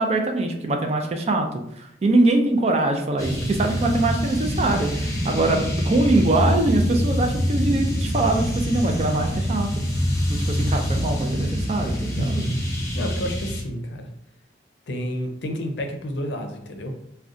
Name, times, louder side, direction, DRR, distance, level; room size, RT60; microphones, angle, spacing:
voice 1, 0.0-1.5 1.8-9.7 10.3-12.5, right 2 dB, 35° right, 4 dB, 0.4 m, -23 dB
sound 1, 3.2-13.6, equal, 20° left, 0.5 m, -25 dB
voice 2, 12.2-12.6 12.9-14.1 14.9-17.1, equal, 80° left, 4 dB, 0.5 m, -30 dB
2.5 x 2.1 x 3.6 m, 0.77 s
head